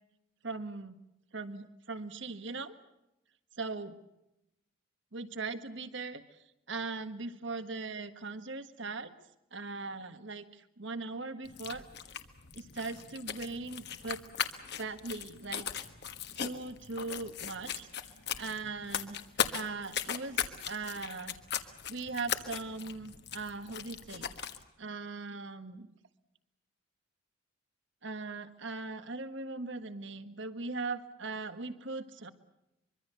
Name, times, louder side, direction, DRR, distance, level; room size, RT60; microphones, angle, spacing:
voice 1, 0.4-1.0 1.3-2.8 3.6-4.0 5.1-6.2 6.7-9.1 9.5-11.8 12.5-14.2 14.8-15.9 16.3-17.9 18.4-19.2 19.5-20.4 20.6-21.4 21.9-24.3 24.8-25.9 28.0-32.3, right 3 dB, 60° right, 10 dB, 1.6 m, -39 dB
sound 1, 11.4-24.6, left 8 dB, 50° left, 1.5 m, -39 dB
24.5 x 23.5 x 6.9 m, 0.88 s
head